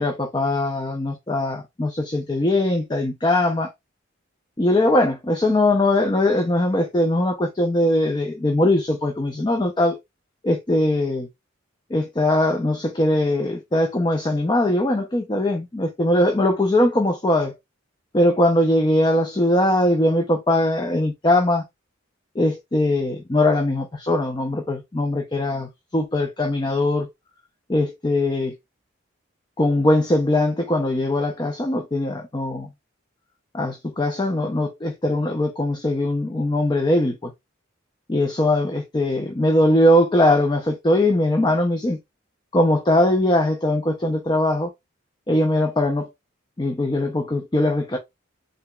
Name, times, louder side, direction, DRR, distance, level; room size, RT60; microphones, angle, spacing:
voice 1, 0.0-3.7 4.6-10.0 10.4-11.3 11.9-17.5 18.1-21.6 22.4-27.1 27.7-28.5 29.6-32.7 33.5-37.3 38.1-42.0 42.5-44.7 45.3-46.1 46.6-48.0, left 1 dB, 20° left, 0.5 m, -21 dB
3.7 x 3.3 x 2.3 m
head